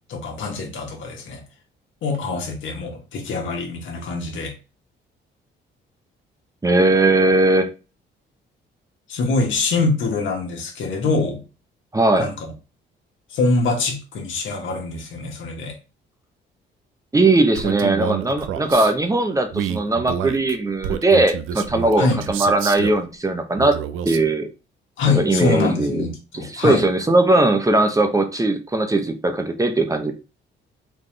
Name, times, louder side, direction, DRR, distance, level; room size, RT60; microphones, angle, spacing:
voice 1, 0.1-1.4 2.0-4.5 9.1-11.4 12.2-12.5 13.3-15.8 22.0-22.2 25.0-26.9, left 3 dB, 75° left, 2 dB, 1.4 m, -24 dB
voice 2, 6.6-7.7 11.9-12.3 17.1-23.8 24.1-24.5 25.1-26.0 26.3-30.1, right 2 dB, 15° right, 6 dB, 0.7 m, -19 dB
Male speech man speaking, 17.5-18.9 19.5-23.0 23.6-24.3, right 9 dB, 85° right, 0.5 m, -28 dB
4.1 x 3.6 x 3.2 m, 0.32 s
cardioid pair, 90°, 20 cm